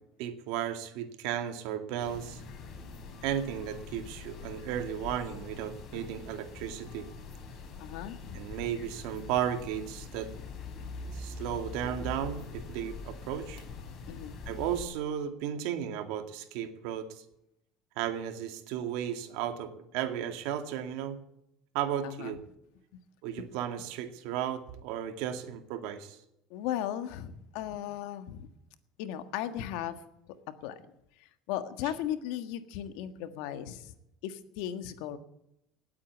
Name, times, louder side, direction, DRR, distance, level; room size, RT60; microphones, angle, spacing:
voice 1, 0.2-2.4 3.2-7.1 8.3-10.3 11.1-13.6 14.5-17.2 18.0-21.2 21.7-22.4 23.2-26.2, right 10 dB, 80° right, 7 dB, 2.1 m, -34 dB
sound 1, 2.0-14.8, left 4 dB, 50° left, 4.3 m, -44 dB
voice 2, 7.8-8.4 14.1-14.4 22.0-22.4 23.4-23.5 26.5-28.5 29.0-30.0 30.6-30.8 31.2-33.9 34.2-35.2, left 11 dB, 80° left, 10 dB, 1.5 m, -36 dB
18.5 x 8.7 x 8.4 m, 0.81 s
supercardioid pair, 105°, 0 cm